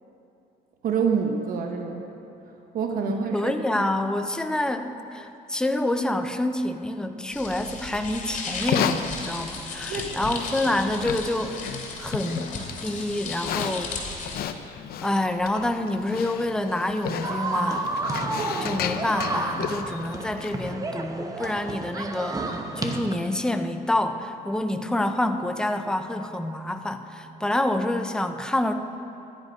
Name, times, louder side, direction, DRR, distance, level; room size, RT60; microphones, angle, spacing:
voice 1, 0.8-2.0 2.7-3.5 9.9-10.1, right 6 dB, 55° right, 3 dB, 1.0 m, -26 dB
voice 2, 3.3-11.6 12.0-14.0 15.0-17.9 18.6-28.7, left 1 dB, 5° left, 7 dB, 0.6 m, -27 dB
sound 1, 7.3-14.4, left 4 dB, 50° left, 2.9 m, -35 dB
Livestock farm animals working animals, 8.5-20.7, left 9 dB, 65° left, 0.6 m, -34 dB
sound 2, 17.2-23.2, right 2 dB, 20° right, 0.9 m, -31 dB
12.0 x 10.5 x 5.2 m, 2.9 s
cardioid pair, 110°, 17 cm